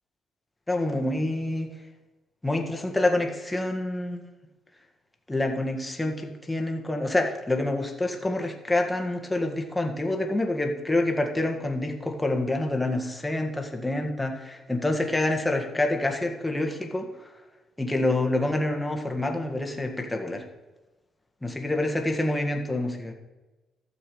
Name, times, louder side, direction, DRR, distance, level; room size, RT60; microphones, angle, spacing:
voice 1, 0.7-1.7 2.4-4.2 5.3-17.1 17.8-20.4 21.4-23.1, left 2 dB, 10° left, 2 dB, 1.8 m, -27 dB
12.5 x 7.2 x 5.0 m, 1.1 s
cardioid pair, 90°, 0 cm